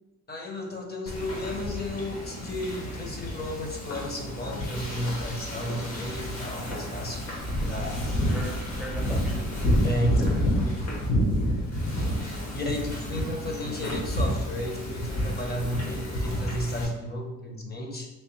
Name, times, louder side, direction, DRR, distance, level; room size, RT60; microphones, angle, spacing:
voice 1, 0.3-7.3 7.6-8.1 9.1-9.3 9.8-10.3 12.5-18.1, left 1 dB, 30° left, 1 dB, 0.8 m, -33 dB
Wind / Ocean, 1.1-16.8, equal, 60° left, 1.2 m, -29 dB
voice 2, 7.6-10.3 10.5-10.8, equal, ahead, 0 dB, 0.6 m, -40 dB
3.3 x 3.2 x 3.1 m, 1.0 s
cardioid pair, 90°, 30 cm